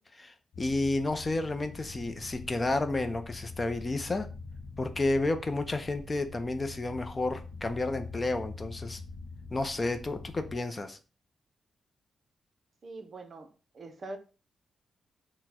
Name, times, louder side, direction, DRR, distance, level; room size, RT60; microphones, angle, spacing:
voice 1, 0.1-4.3 4.8-9.0 9.5-11.0, left 2 dB, 25° left, 0.4 m, -31 dB
sound 1, 0.5-10.6, left 3 dB, 65° left, 0.6 m, -44 dB
voice 2, 12.8-14.2, right 2 dB, 45° right, 0.5 m, -43 dB
4.2 x 2.1 x 4.1 m
wide cardioid pair, 130°, 0 cm